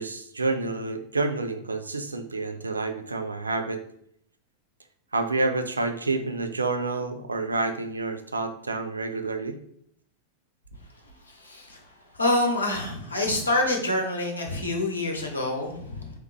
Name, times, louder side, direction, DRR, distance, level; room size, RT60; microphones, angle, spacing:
voice 1, 0.0-3.8 5.1-9.6, right 3 dB, 80° right, 7 dB, 0.4 m, -29 dB
voice 2, 11.3-11.8 12.1-16.1, left 1 dB, 80° left, 2 dB, 0.8 m, -27 dB
3.3 x 3.1 x 3.3 m, 0.68 s
figure-of-eight pair, 90°, 0 cm